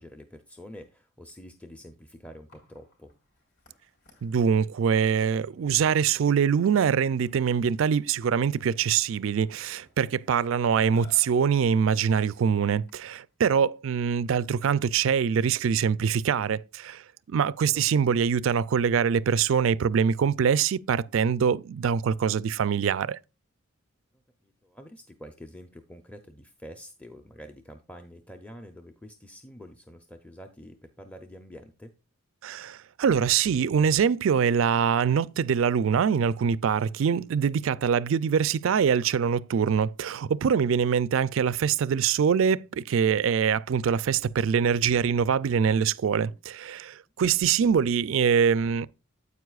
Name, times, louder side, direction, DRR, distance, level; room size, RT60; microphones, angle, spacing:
voice 1, 0.0-3.1 10.7-11.0 17.6-17.8 24.4-31.9 40.8-40.9, equal, 5° left, 0.6 m, -47 dB
Burping eructation, 2.5-13.2, left 2 dB, 55° left, 4.1 m, -59 dB
voice 2, 4.2-23.2 32.4-48.9, right 7 dB, 70° right, 0.4 m, -24 dB
9.4 x 8.3 x 2.4 m
head